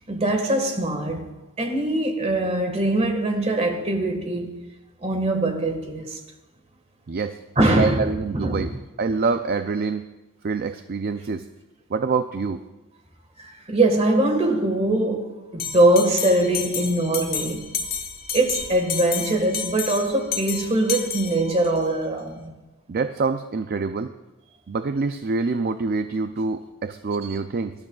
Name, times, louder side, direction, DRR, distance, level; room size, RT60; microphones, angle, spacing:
voice 1, 0.1-4.6 5.0-6.2 7.5-8.7 13.4-17.7 18.3-22.5 27.3-27.4, right 1 dB, 30° right, 1.6 m, -22 dB
voice 2, 7.1-7.4 7.8-8.7 9.0-10.0 10.4-11.5 11.9-12.6 22.9-24.1 24.7-27.7, right 4 dB, 45° right, 0.4 m, -26 dB
Bell, 15.6-21.8, left 6 dB, 45° left, 1.2 m, -31 dB
23.0 x 12.5 x 2.4 m
head